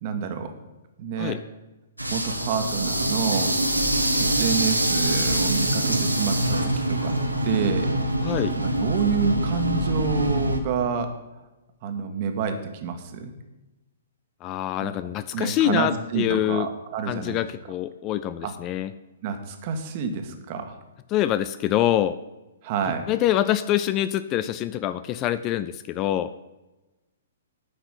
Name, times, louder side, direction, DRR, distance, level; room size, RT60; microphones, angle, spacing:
voice 1, 0.0-0.6 1.0-1.4 2.1-3.6 4.2-7.2 7.4-7.9 8.5-11.2 11.8-13.3 14.8-14.9 15.3-17.4 18.4-18.5 19.2-20.8 22.6-23.1, right 6 dB, 40° right, 6 dB, 1.6 m, -28 dB
sound 1, 2.0-10.6, right 1 dB, 90° right, 1.5 m, -24 dB
voice 2, 8.2-8.6 14.4-16.7 17.1-18.9 21.1-22.2 23.1-26.3, left 12 dB, 25° left, 13 dB, 0.4 m, -25 dB
10.0 x 5.9 x 8.5 m, 1.0 s
figure-of-eight pair, 120°, 0 cm